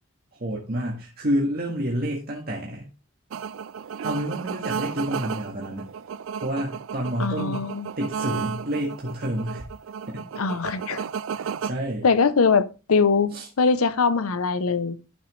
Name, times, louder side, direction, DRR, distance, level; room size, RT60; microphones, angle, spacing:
voice 1, 0.4-2.9 4.0-5.9 6.4-7.6 8.0-9.6 10.1-10.2 11.4-12.1 13.3-13.5, equal, 45° right, 1.7 m, -29 dB
sound 1, 3.3-11.7, right 7 dB, 65° right, 0.4 m, -33 dB
voice 2, 7.2-7.9 10.4-11.0 12.0-15.0, left 5 dB, 85° left, 0.7 m, -22 dB
11.5 x 5.8 x 3.1 m
head